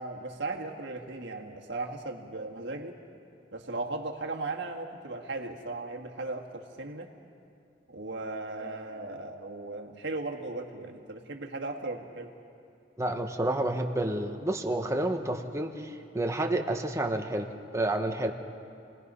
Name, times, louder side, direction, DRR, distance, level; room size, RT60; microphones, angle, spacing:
voice 1, 0.0-3.0 3.5-7.1 7.9-12.3, right 2 dB, 65° right, 2 dB, 1.8 m, -37 dB
voice 2, 13.0-17.5 17.7-18.3, right 1 dB, 15° right, 4 dB, 1.2 m, -29 dB
29.5 x 19.0 x 5.6 m, 2.6 s
head